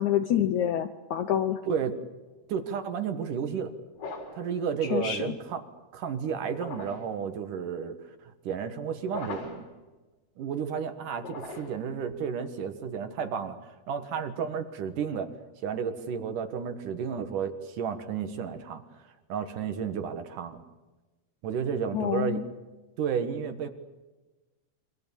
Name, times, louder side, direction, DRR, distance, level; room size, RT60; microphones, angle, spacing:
voice 1, 0.0-1.6 4.8-5.3 21.9-22.5, left 10 dB, 80° left, 10 dB, 1.6 m, -27 dB
voice 2, 2.5-3.7 4.3-5.6 5.9-8.0 8.2-9.7 10.4-13.6 13.9-15.3 15.6-18.8 19.3-20.6 21.4-22.4 23.0-23.7, right 7 dB, 60° right, 9 dB, 2.8 m, -32 dB
sound 1, 4.0-4.5 6.5-7.2 9.1-9.7 11.2-11.9, left 3 dB, 60° left, 6.2 m, -40 dB
28.0 x 25.0 x 7.2 m, 1.2 s
omnidirectional pair, 4.7 m